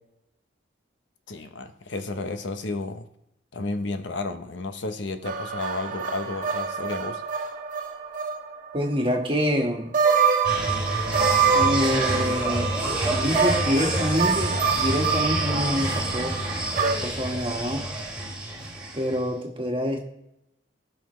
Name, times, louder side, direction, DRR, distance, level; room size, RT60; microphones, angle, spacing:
voice 1, 1.3-3.1 3.5-7.2, left 2 dB, 75° left, 8 dB, 0.8 m, -32 dB
sound 1, 5.2-8.8 9.1-9.2 9.9-16.9, right 6 dB, 45° right, 1.2 m, -26 dB
voice 2, 8.7-9.9 11.5-12.7 13.0-16.4 17.0-17.8 18.9-20.0, equal, 30° right, 1 dB, 1.5 m, -26 dB
sound 2, 10.4-19.2, right 1 dB, 5° right, 2.2 m, -28 dB
16.5 x 5.7 x 3.2 m, 0.82 s
head